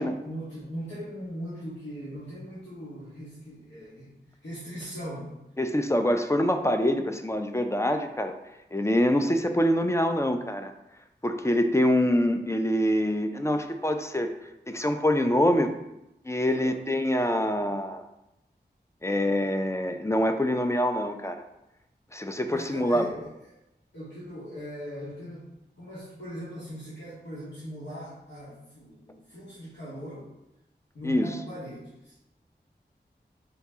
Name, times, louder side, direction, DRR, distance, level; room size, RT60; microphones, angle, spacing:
voice 1, 0.0-5.3 16.5-16.8 22.5-23.6 23.9-25.4 25.8-30.3 30.9-32.2, equal, 85° left, -12 dB, 1.3 m, -40 dB
voice 2, 5.6-8.3 8.7-10.7 11.2-14.3 14.7-15.7 16.3-18.0 19.0-21.4 22.1-23.0 31.0-31.3, left 1 dB, 15° left, 6 dB, 0.3 m, -25 dB
4.0 x 2.7 x 3.5 m, 0.89 s
wide cardioid pair, 50°, 18 cm